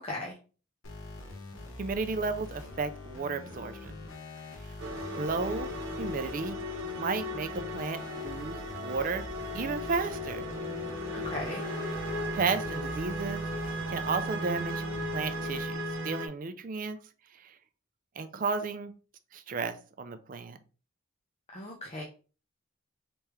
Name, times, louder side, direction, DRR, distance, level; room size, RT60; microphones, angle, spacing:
voice 1, 0.0-0.3 11.1-11.6 21.5-22.0, left 2 dB, 30° left, -2 dB, 0.6 m, -37 dB
sound 1, 0.8-15.7, left 2 dB, 80° left, 0.9 m, -44 dB
voice 2, 1.8-3.9 5.1-5.7 6.0-6.6 6.9-9.3 9.5-10.5 12.3-13.4 13.9-14.8 15.1-17.0 17.4-17.5 18.2-18.9 19.3-20.6, right 4 dB, 40° right, 10 dB, 0.4 m, -33 dB
sound 2, 4.8-16.3, equal, 65° right, 0.9 m, -36 dB
3.4 x 3.2 x 3.0 m, 0.36 s
head